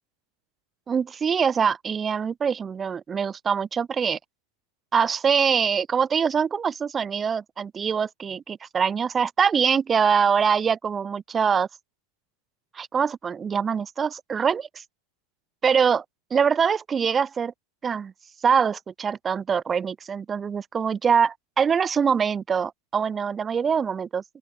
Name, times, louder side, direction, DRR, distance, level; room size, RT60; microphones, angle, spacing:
voice 1, 0.9-4.2 4.9-11.7 12.7-14.8 15.6-16.0 16.3-17.5 17.8-18.1 18.4-24.2, right 6 dB, 20° right, 0.3 m, -24 dB
open air
figure-of-eight pair, 90°, 0 cm